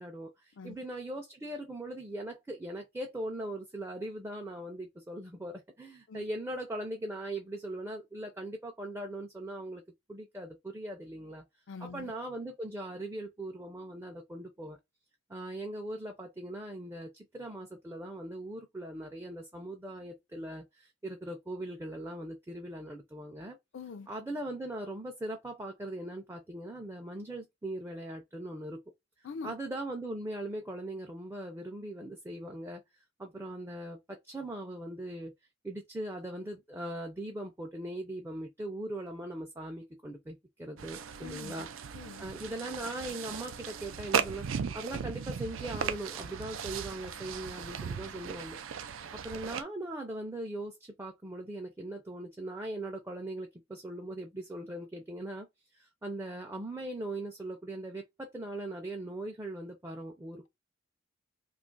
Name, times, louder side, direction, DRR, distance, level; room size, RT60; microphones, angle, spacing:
voice 1, 0.0-9.8 10.1-11.4 11.8-14.8 15.3-23.6 24.1-28.8 29.2-32.8 33.2-35.3 35.6-41.7 42.2-48.6 49.1-55.5 55.7-60.5, right 1 dB, 15° right, 0.4 m, -40 dB
voice 2, 11.7-12.1 23.7-24.1 29.2-29.5 41.2-41.7 41.9-42.3, left 5 dB, 65° left, 0.4 m, -44 dB
sound 1, 40.8-49.6, right 7 dB, 85° right, 0.4 m, -37 dB
2.8 x 2.4 x 3.8 m
head